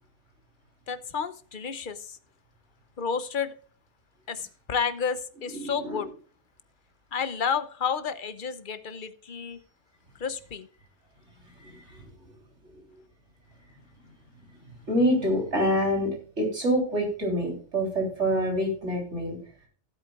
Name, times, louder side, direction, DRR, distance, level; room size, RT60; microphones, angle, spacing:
voice 1, 0.9-2.2 3.0-3.5 4.3-6.1 7.1-9.6 10.2-10.7, left 6 dB, 50° left, 13 dB, 0.9 m, -31 dB
voice 2, 5.5-6.1 11.6-12.1 14.9-16.1 16.4-19.4, equal, 70° right, 0 dB, 4.0 m, -26 dB
16.5 x 8.0 x 2.4 m, 0.43 s
omnidirectional pair, 1.2 m